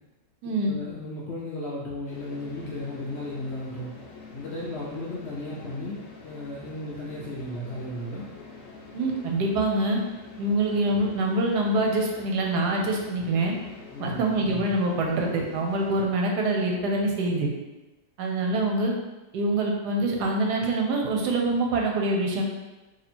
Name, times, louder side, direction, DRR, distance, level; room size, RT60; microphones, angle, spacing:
voice 1, 0.6-3.9 4.3-8.3 13.9-14.2, left 1 dB, 85° left, -5 dB, 0.5 m, -35 dB
sound 1, 2.1-16.1, left 4 dB, 60° left, 0.9 m, -45 dB
voice 2, 8.9-10.0 10.4-13.5 14.0-17.5 18.2-18.9 19.3-22.4, right 2 dB, 70° right, 0 dB, 1.1 m, -25 dB
2.8 x 2.8 x 4.2 m, 1.1 s
omnidirectional pair, 1.9 m